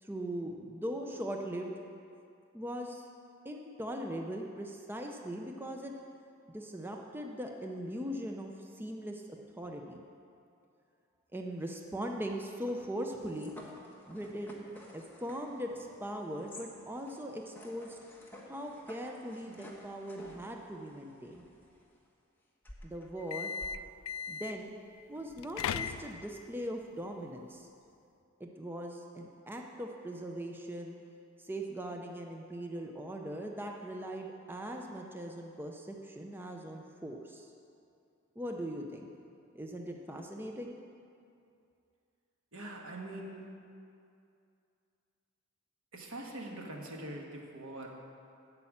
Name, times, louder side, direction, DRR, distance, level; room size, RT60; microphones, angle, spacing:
voice 1, 0.0-1.7 2.5-3.1 3.4-5.9 6.5-9.2 9.5-10.0 11.3-13.5 14.1-14.7 14.9-18.0 18.5-21.5 22.8-23.5 24.3-24.7 25.1-27.7 28.4-31.0 31.4-37.5 38.4-39.1 39.5-40.7, equal, 10° right, 2 dB, 0.6 m, -40 dB
sound 1, 12.7-22.0 22.6-23.7, left 1 dB, 10° left, 1.2 m, -53 dB
sound 2, 23.2-24.7 25.3-26.4, left 7 dB, 80° left, 0.4 m, -37 dB
voice 2, 42.5-43.5 45.9-47.9, right 1 dB, 80° right, 0 dB, 1.6 m, -43 dB
8.5 x 6.8 x 8.6 m, 2.5 s
head